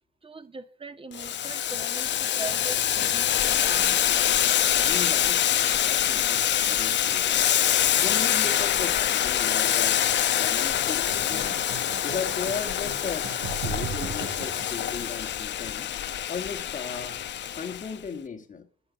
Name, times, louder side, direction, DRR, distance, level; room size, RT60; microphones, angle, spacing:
voice 1, 0.2-4.2, right 4 dB, 25° right, 1.8 m, -41 dB
Boiling, 1.1-17.9, left 11 dB, 65° left, 0.9 m, -25 dB
voice 2, 4.7-7.7 8.0-10.0 10.4-11.6 12.0-13.3 13.6-15.9 16.3-17.2 17.5-18.7, left 5 dB, 40° left, 1.6 m, -36 dB
sound 1, 11.1-15.4, right 5 dB, 85° right, 2.9 m, -37 dB
11.0 x 10.0 x 8.1 m
cardioid pair, 90°, 20 cm